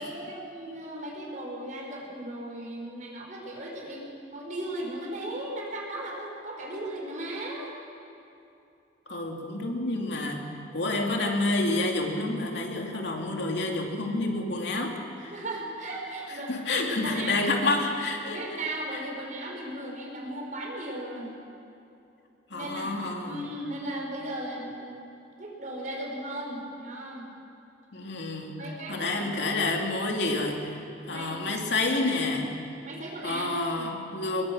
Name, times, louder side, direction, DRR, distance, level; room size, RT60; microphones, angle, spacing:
voice 1, 0.0-7.7 15.2-17.4 18.2-21.3 22.5-22.9 23.2-25.1 25.4-27.3 28.5-29.3 31.1-31.6 32.8-33.9, right 1 dB, 45° right, -1 dB, 5.4 m, -37 dB
voice 2, 9.1-10.4 10.7-15.4 16.5-18.4 22.5-23.4 27.9-28.6 28.9-30.8 31.1-32.5 33.2-34.4, left 2 dB, 70° left, 1 dB, 2.7 m, -29 dB
25.0 x 21.5 x 6.3 m, 2.7 s
head